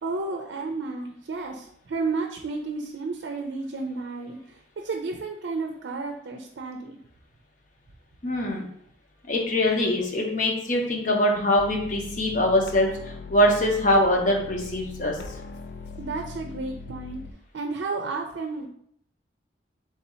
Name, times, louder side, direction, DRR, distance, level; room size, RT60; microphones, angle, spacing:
voice 1, 0.0-7.0 16.0-17.2 17.5-18.7, right 3 dB, 85° right, 3 dB, 0.4 m, -32 dB
voice 2, 8.2-8.6 9.3-15.2, left 1 dB, 45° left, 1 dB, 0.8 m, -23 dB
sound 1, 11.6-17.3, left 4 dB, 70° left, 0.3 m, -40 dB
3.5 x 2.7 x 4.2 m, 0.70 s
head